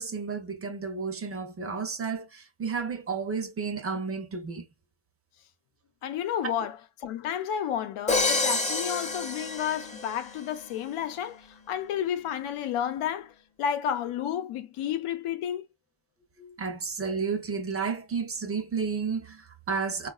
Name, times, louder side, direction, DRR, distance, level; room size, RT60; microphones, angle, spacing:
voice 1, 0.0-4.6 6.4-6.5 16.4-20.1, right 5 dB, 30° right, 0.6 m, -32 dB
voice 2, 6.0-15.7, left 9 dB, 80° left, 0.8 m, -31 dB
Crash cymbal, 8.1-10.3, left 3 dB, 15° left, 0.7 m, -28 dB
3.8 x 2.4 x 2.3 m
cardioid pair, 130°, 49 cm